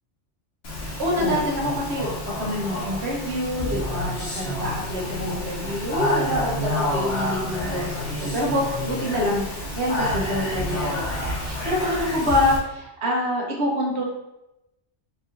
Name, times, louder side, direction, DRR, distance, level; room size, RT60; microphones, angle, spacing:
Speech, 0.6-12.6, left 1 dB, 55° left, 1.3 m, -29 dB
voice 1, 0.8-2.1 2.4-14.0, left 1 dB, 60° right, -2 dB, 1.3 m, -26 dB
4.5 x 2.8 x 3.8 m, 0.94 s
omnidirectional pair, 1.3 m